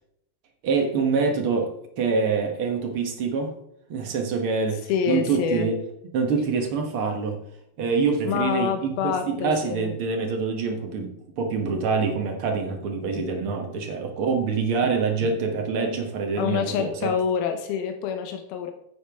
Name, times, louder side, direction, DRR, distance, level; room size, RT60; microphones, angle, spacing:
voice 1, 0.6-3.5 3.9-5.8 6.1-7.4 7.8-17.1, right 5 dB, 65° right, 3 dB, 1.4 m, -25 dB
voice 2, 4.9-5.7 8.2-9.9 16.4-18.7, left 8 dB, 85° left, 5 dB, 2.8 m, -26 dB
9.7 x 8.6 x 3.5 m, 0.74 s
omnidirectional pair, 4.2 m